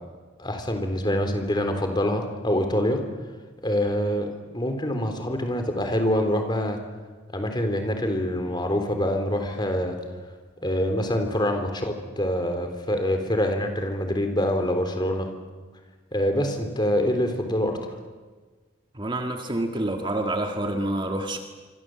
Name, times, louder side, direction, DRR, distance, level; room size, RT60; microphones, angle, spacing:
voice 1, 0.4-3.0 3.6-6.8 7.3-10.0 10.6-15.3 16.1-17.7, equal, 20° left, 6 dB, 3.6 m, -25 dB
voice 2, 18.9-21.4, right 1 dB, 25° right, 4 dB, 1.8 m, -27 dB
26.0 x 25.5 x 7.8 m, 1.4 s
head